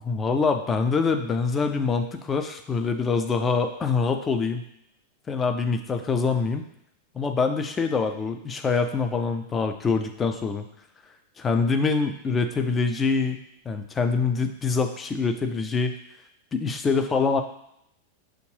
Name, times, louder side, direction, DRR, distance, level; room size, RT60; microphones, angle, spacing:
voice 1, 0.0-4.6 5.3-6.6 7.1-10.6 11.4-13.4 13.7-15.9 16.5-17.4, left 4 dB, 20° left, 6 dB, 0.5 m, -25 dB
6.4 x 2.5 x 3.3 m, 0.75 s
figure-of-eight pair, 90°, 0 cm